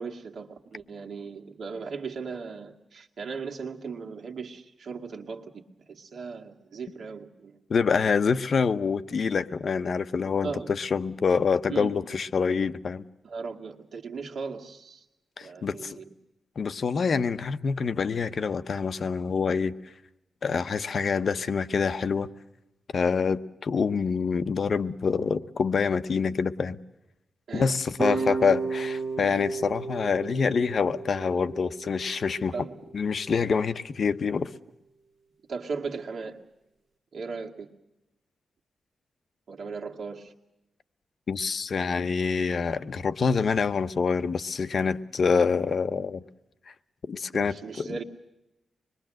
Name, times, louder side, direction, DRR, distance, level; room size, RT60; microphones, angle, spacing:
voice 1, 0.0-5.6 5.9-7.6 9.8-9.9 10.4-10.7 11.7-11.9 13.2-15.0 15.4-16.0 27.5-27.7 28.1-28.2 32.5-32.7 35.5-36.4 37.1-37.7 39.5-40.3 47.3-48.0, right 5 dB, 65° right, 2.3 m, -37 dB
voice 2, 7.7-13.0 15.4-16.0 16.6-19.7 20.4-22.3 22.9-26.8 27.5-32.5 32.9-34.5 41.3-46.2 47.1-47.9, left 5 dB, 55° left, 0.9 m, -26 dB
sound 1, 28.0-33.1, right 4 dB, 35° right, 1.8 m, -33 dB
26.0 x 22.0 x 7.7 m
wide cardioid pair, 125°, 0 cm